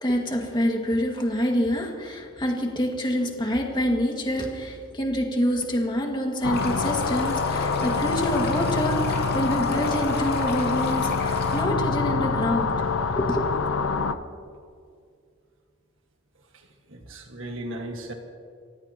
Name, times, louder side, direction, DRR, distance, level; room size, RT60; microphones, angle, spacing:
voice 1, 0.0-12.7 13.2-13.5, equal, 25° left, 0 dB, 2.0 m, -26 dB
sound 1, 6.4-14.2, left 4 dB, 85° left, 0.7 m, -26 dB
Stream, 6.5-11.6, left 3 dB, 50° left, 2.7 m, -35 dB
voice 2, 16.5-18.1, right 1 dB, 70° right, 3 dB, 1.7 m, -37 dB
28.5 x 15.0 x 3.0 m, 2.3 s
head